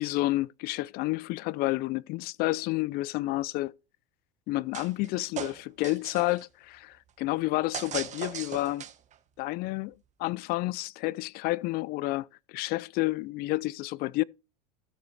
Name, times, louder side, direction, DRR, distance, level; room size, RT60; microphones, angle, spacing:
voice 1, 0.0-3.7 4.5-8.8 9.4-9.9 10.2-14.2, left 19 dB, 50° left, 0.4 m, -30 dB
sound 1, 4.7-5.1 5.4-6.4 7.7-9.1, right 9 dB, 35° right, 1.2 m, -38 dB
13.0 x 6.8 x 3.2 m
supercardioid pair, 105°, 21 cm